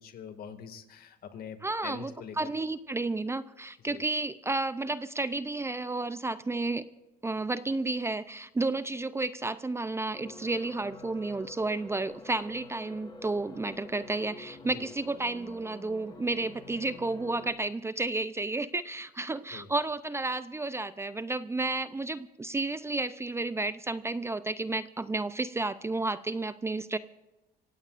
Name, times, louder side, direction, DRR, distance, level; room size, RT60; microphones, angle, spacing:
voice 1, 0.0-1.6 1.8-2.5 3.8-4.0 14.7-14.9 19.5-19.7, left 7 dB, 60° left, 7 dB, 2.1 m, -44 dB
voice 2, 1.6-6.8 7.2-27.0, right 2 dB, 15° right, 14 dB, 0.5 m, -32 dB
sound 1, 10.1-17.5, left 3 dB, 25° left, 3.5 m, -48 dB
26.0 x 16.5 x 2.5 m, 1.0 s
cardioid pair, 110°, 17 cm